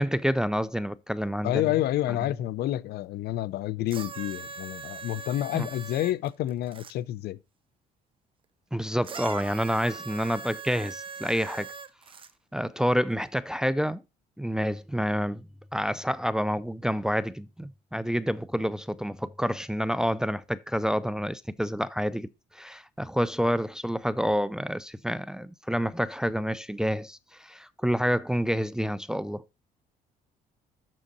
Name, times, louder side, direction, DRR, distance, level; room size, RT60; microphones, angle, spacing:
voice 1, 0.0-1.7 5.5-5.7 8.7-11.7 12.5-14.0 14.4-22.3 22.5-29.4, equal, 5° right, 0.4 m, -28 dB
voice 2, 1.4-7.4, left 13 dB, 70° left, 0.6 m, -29 dB
sound 1, 3.9-6.9 9.0-12.3 13.2-13.3, right 5 dB, 30° right, 0.7 m, -41 dB
7.6 x 6.4 x 4.0 m
cardioid pair, 110°, 17 cm